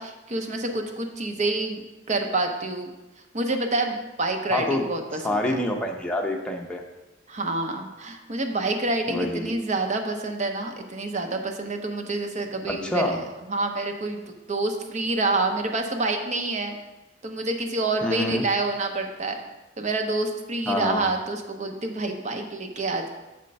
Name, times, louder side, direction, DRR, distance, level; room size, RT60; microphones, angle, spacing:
voice 1, 0.0-2.9 3.3-5.5 7.3-16.7 17.2-19.4 19.8-23.1, right 2 dB, 40° right, 4 dB, 0.7 m, -28 dB
voice 2, 4.5-4.9 5.1-6.8 9.1-9.5 12.6-13.2 18.0-18.4 20.7-21.1, left 1 dB, 5° left, 0 dB, 0.7 m, -26 dB
6.8 x 4.4 x 5.2 m, 1.0 s
head